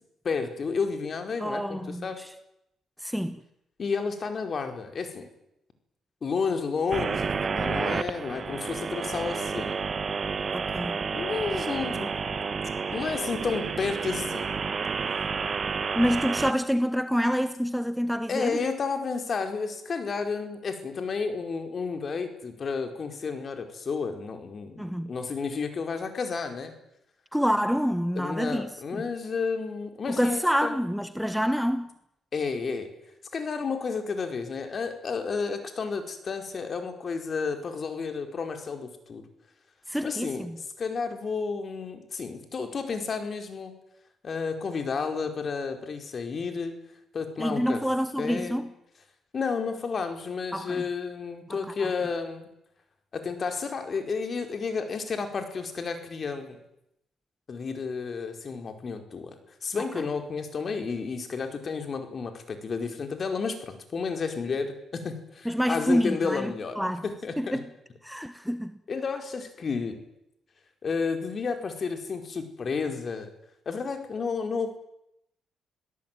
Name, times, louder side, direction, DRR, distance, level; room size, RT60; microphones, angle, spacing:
voice 1, 0.2-2.2 3.8-5.3 6.2-9.8 10.8-10.9 11.1-12.5 12.9-14.5 18.3-26.7 28.2-30.7 32.3-32.9 33.3-39.2 40.0-40.5 40.8-43.7 44.2-46.7 47.1-47.8 48.2-48.6 49.3-52.5 53.1-56.6 57.5-59.3 59.6-67.6 68.9-70.0 70.8-73.3 73.6-74.8, left 5 dB, 45° left, 4.8 m, -31 dB
voice 2, 1.4-2.3 3.0-3.4 10.5-11.0 15.9-18.6 24.8-25.1 27.3-29.0 30.1-31.9 39.9-40.6 47.4-48.7 50.5-50.8 51.5-51.9 59.8-60.0 65.4-67.0 67.4-67.7 68.0-68.7, equal, ahead, 1.3 m, -27 dB
sound 1, 6.9-16.5, right 5 dB, 40° right, 1.4 m, -30 dB
27.5 x 17.0 x 9.3 m
cardioid pair, 90°, 0 cm